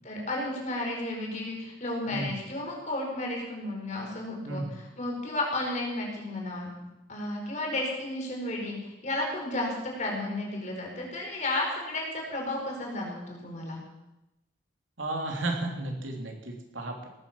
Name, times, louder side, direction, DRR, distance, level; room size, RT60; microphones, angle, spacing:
voice 1, 0.0-6.7 7.1-13.8, left 1 dB, 40° left, 0 dB, 4.6 m, -33 dB
voice 2, 2.1-2.4 4.4-4.7 15.0-16.9, right 2 dB, 85° right, 2 dB, 3.3 m, -33 dB
18.0 x 10.5 x 7.3 m, 0.98 s
head